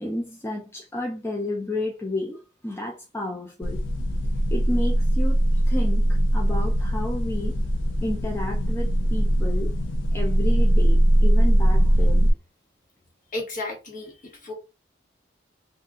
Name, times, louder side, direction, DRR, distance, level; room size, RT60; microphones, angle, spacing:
voice 1, 0.0-3.8 4.5-7.6 8.0-9.8 10.1-12.3, left 1 dB, 10° left, 0.4 m, -31 dB
sound 1, 3.6-12.3, right 1 dB, 75° left, 0.5 m, -21 dB
voice 2, 13.3-14.5, left 2 dB, 45° left, 1.5 m, -33 dB
2.6 x 2.4 x 3.5 m
head